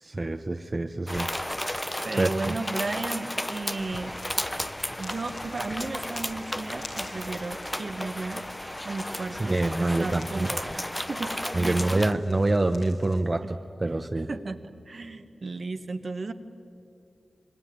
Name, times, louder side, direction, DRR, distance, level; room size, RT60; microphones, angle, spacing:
voice 1, 0.0-1.3 2.2-2.6 9.4-10.5 11.5-14.3, right 2 dB, 35° right, 7 dB, 0.9 m, -26 dB
sound 1, 1.1-12.1, left 1 dB, 10° left, 0.6 m, -34 dB
voice 2, 2.0-4.2 5.0-8.4 8.8-12.0 13.4-13.5 14.3-14.6 14.9-16.3, right 3 dB, 60° right, 8 dB, 1.4 m, -34 dB
sound 2, 3.7-13.2, left 2 dB, 85° left, 5.3 m, -48 dB
26.5 x 22.5 x 9.5 m, 2.5 s
wide cardioid pair, 65°, 0 cm